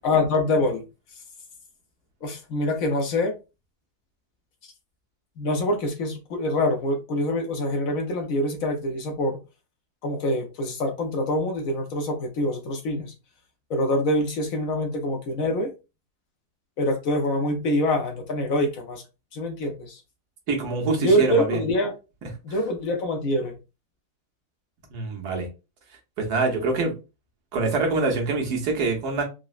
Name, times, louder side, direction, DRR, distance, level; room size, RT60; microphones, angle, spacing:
voice 1, 0.0-0.8 2.2-3.3 5.4-9.4 10.0-13.1 13.7-15.7 16.8-19.0 19.3-20.0 21.0-21.9 22.4-23.6, left 1 dB, 65° left, 1.0 m, -25 dB
voice 2, 20.5-21.6 24.9-25.5 26.2-26.9 27.5-29.2, right 3 dB, 75° right, 1.4 m, -25 dB
3.8 x 2.0 x 2.4 m
omnidirectional pair, 1.7 m